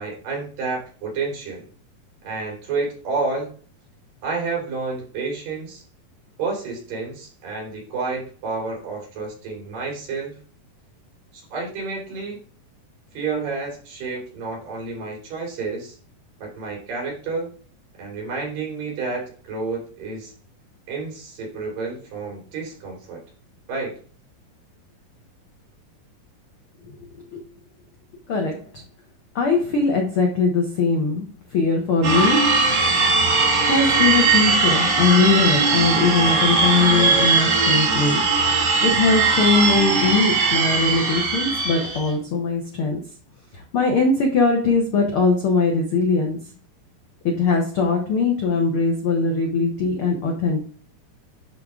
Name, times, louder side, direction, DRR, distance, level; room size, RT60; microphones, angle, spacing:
voice 1, 0.0-1.7 2.2-3.5 4.2-5.8 6.4-10.4 11.3-12.4 13.1-16.0 16.4-17.5 18.0-20.3 20.9-23.2 23.7-24.0, right 4 dB, 75° right, -1 dB, 4.8 m, -30 dB
voice 2, 28.3-28.8 29.3-31.2 31.5-32.4 33.6-38.2 38.8-43.0 43.5-46.4 47.2-50.6, left 4 dB, 70° left, 2 dB, 1.3 m, -21 dB
sound 1, 32.0-42.1, right 4 dB, 55° right, 3.2 m, -19 dB
11.0 x 3.9 x 3.6 m, 0.42 s
omnidirectional pair, 4.0 m